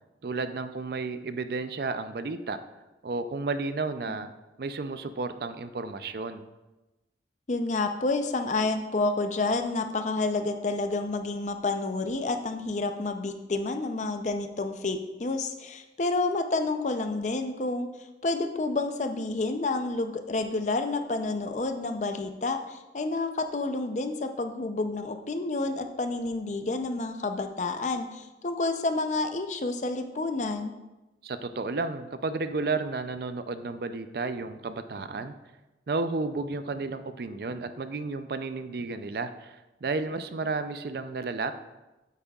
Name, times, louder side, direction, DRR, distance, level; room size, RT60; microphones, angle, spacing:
voice 1, 0.2-2.6 3.0-4.3 4.6-6.4 31.2-35.3 35.9-41.5, right 3 dB, 55° right, 11 dB, 0.4 m, -32 dB
voice 2, 7.5-17.9 18.2-30.7, left 3 dB, 40° left, 7 dB, 0.5 m, -29 dB
8.8 x 8.3 x 2.3 m, 1.1 s
head